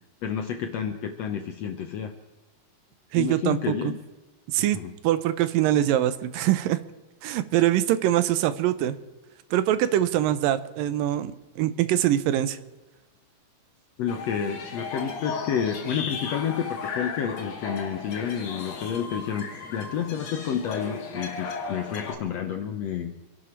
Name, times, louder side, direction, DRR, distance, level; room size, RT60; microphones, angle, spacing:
voice 1, 0.2-2.1 3.2-4.0 4.6-4.9 14.0-23.1, left 8 dB, 75° left, 6 dB, 1.5 m, -30 dB
voice 2, 3.1-3.9 4.5-4.8 5.0-6.8 7.2-9.0 9.5-12.6, right 12 dB, 80° right, 13 dB, 2.4 m, -23 dB
sound 1, 14.1-22.1, left 5 dB, 55° left, 2.8 m, -35 dB
26.0 x 11.0 x 4.5 m, 1.1 s
omnidirectional pair, 4.1 m